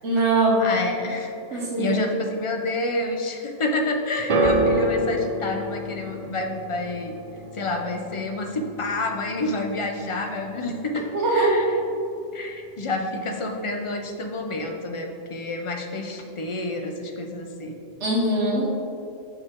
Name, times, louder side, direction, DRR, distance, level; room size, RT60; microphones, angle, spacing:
voice 1, 0.0-0.5 1.5-2.0 11.1-11.6 18.0-18.7, right 2 dB, 70° right, -4 dB, 1.3 m, -22 dB
voice 2, 0.6-7.1 7.5-11.0 11.3-11.8 12.3-17.7, left 2 dB, 50° left, 3 dB, 0.4 m, -29 dB
sound 1, 4.3-10.6 10.8-11.5 12.2-12.3, right 1 dB, 45° right, 0.4 m, -29 dB
6.2 x 5.0 x 3.6 m, 2.6 s
omnidirectional pair, 1.2 m